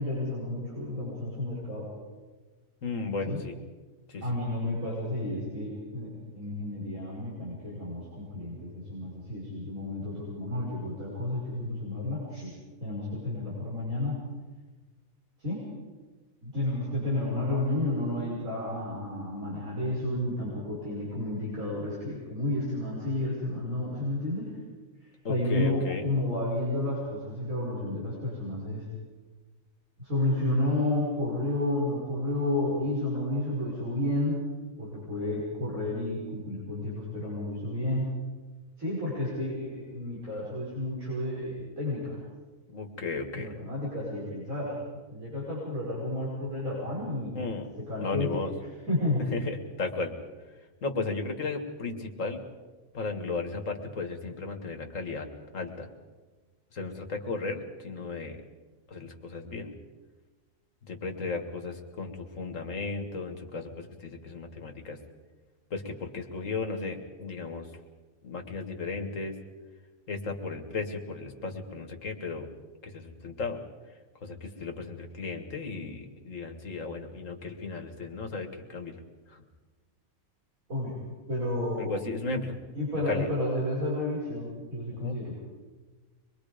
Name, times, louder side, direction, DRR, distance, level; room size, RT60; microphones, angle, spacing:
voice 1, 0.0-1.9 3.3-3.4 4.2-14.2 15.4-15.6 16.4-24.6 25.0-28.9 30.0-34.4 34.8-38.1 38.8-42.2 43.3-44.7 45.1-47.3 47.9-48.4 48.9-49.2 80.7-81.0 81.3-81.9 82.7-85.3, left 1 dB, 70° right, -6 dB, 6.2 m, -31 dB
voice 2, 2.8-3.6 4.1-4.2 25.2-26.0 42.7-43.5 47.3-47.7 48.0-48.5 49.3-50.1 50.8-52.4 52.9-55.3 55.5-55.9 56.7-58.4 58.9-59.7 60.8-65.0 65.7-67.7 68.2-69.3 70.1-72.5 72.8-73.6 74.2-79.0 79.3-79.4 81.8-82.6 83.1-83.3 85.0-85.2, left 3 dB, 60° left, 4 dB, 2.3 m, -35 dB
25.5 x 22.0 x 5.2 m, 1.3 s
omnidirectional pair, 1.5 m